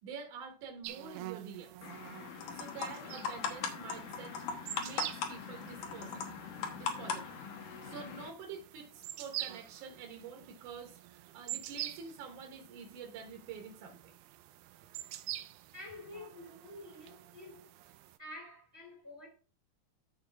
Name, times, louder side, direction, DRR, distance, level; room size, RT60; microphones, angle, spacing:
voice 1, 0.0-1.8 2.5-4.4 4.8-6.3 6.7-7.4 7.8-14.2, right 5 dB, 60° right, 2.5 m, -47 dB
sound 1, 0.8-18.2, right 14 dB, 85° right, 2.6 m, -47 dB
sound 2, 1.8-8.3, left 6 dB, 65° left, 2.5 m, -40 dB
voice 2, 15.7-17.7 18.2-19.3, left 1 dB, 5° right, 1.4 m, -49 dB
13.5 x 4.7 x 3.5 m
omnidirectional pair, 4.4 m